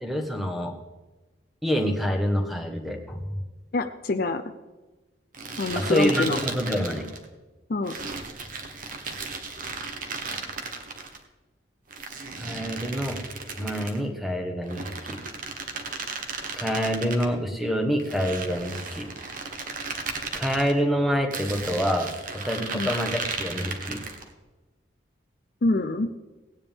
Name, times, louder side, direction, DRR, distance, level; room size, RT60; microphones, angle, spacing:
voice 1, 0.0-0.7 1.6-3.3 5.7-7.1 12.4-13.2 13.6-15.2 16.6-19.1 20.3-22.1 22.4-24.0, equal, ahead, 3 dB, 1.4 m, -27 dB
voice 2, 3.7-4.4 5.6-6.4 7.7-7.9 22.7-23.0 25.6-26.1, left 2 dB, 50° left, 8 dB, 0.5 m, -25 dB
sound 1, 5.3-7.2 7.9-11.2 11.9-14.0 14.6-17.3 18.0-20.7 21.3-24.3, right 4 dB, 45° right, 1.3 m, -35 dB
17.5 x 9.8 x 3.6 m, 1.2 s
head